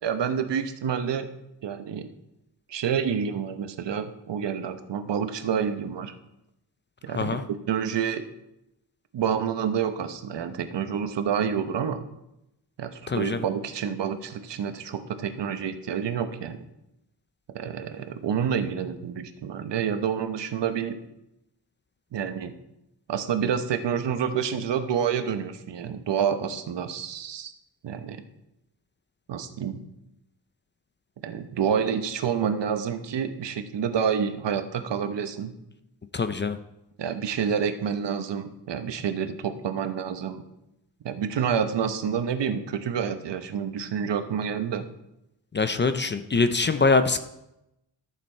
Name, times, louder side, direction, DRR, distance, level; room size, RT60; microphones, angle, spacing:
voice 1, 0.0-1.3 1.6-2.1 2.7-6.1 7.0-7.4 7.7-8.2 9.1-12.0 12.8-16.6 17.5-21.0 22.1-22.5 23.1-27.5 27.8-28.2 29.3-29.8 31.2-35.5 37.0-40.4 41.0-44.9, right 7 dB, 80° right, 9 dB, 0.9 m, -28 dB
voice 2, 7.1-7.4 13.1-13.5 36.1-36.6 45.5-47.2, left 4 dB, 30° left, 10 dB, 0.4 m, -23 dB
12.5 x 6.8 x 4.4 m, 0.87 s
wide cardioid pair, 165°, 42 cm